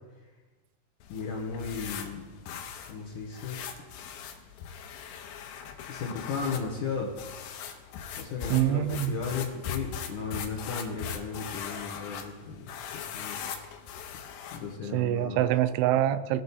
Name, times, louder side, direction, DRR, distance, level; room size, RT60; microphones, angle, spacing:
Brush Strokes on a Canvas, 1.0-14.8, left 8 dB, 85° left, 2.8 m, -40 dB
voice 1, 1.1-2.3 2.9-3.6 5.9-7.1 8.2-13.4 14.5-15.4, left 5 dB, 70° left, -1 dB, 2.0 m, -35 dB
voice 2, 8.5-9.2 14.9-16.4, right 12 dB, 90° right, 13 dB, 2.7 m, -25 dB
19.0 x 6.3 x 4.1 m, 1.3 s
omnidirectional pair, 4.7 m